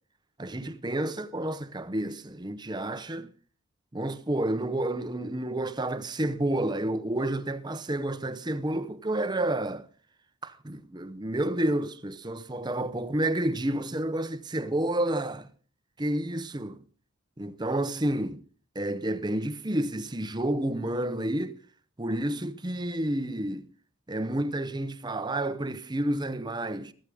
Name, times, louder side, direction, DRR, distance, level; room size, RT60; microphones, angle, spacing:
voice 1, 0.4-3.3 3.9-9.9 10.4-15.5 16.0-16.8 17.4-18.4 18.7-21.6 22.0-23.7 24.1-26.9, right 1 dB, 20° right, 0.7 m, -30 dB
15.0 x 14.0 x 3.5 m
head